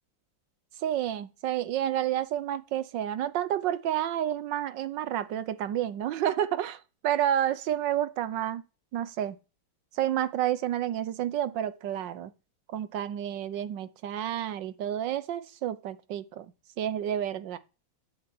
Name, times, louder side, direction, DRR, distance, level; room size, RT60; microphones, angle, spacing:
voice 1, 0.8-8.6 8.9-9.4 9.9-12.3 12.7-16.5 16.8-17.6, right 11 dB, 70° right, 1.5 m, -30 dB
10.0 x 6.9 x 7.7 m
omnidirectional pair, 2.1 m